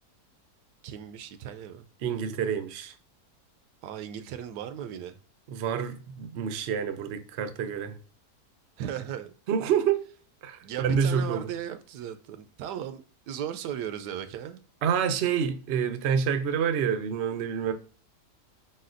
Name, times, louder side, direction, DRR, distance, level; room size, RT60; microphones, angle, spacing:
voice 1, 0.8-1.9 3.8-5.2 8.8-9.3 10.6-14.6, right 10 dB, 85° right, 1.2 m, -37 dB
voice 2, 2.0-2.9 5.5-8.0 9.5-10.0 10.4-11.5 14.8-17.7, right 7 dB, 70° right, 0.6 m, -27 dB
4.3 x 4.1 x 2.5 m
omnidirectional pair, 1.7 m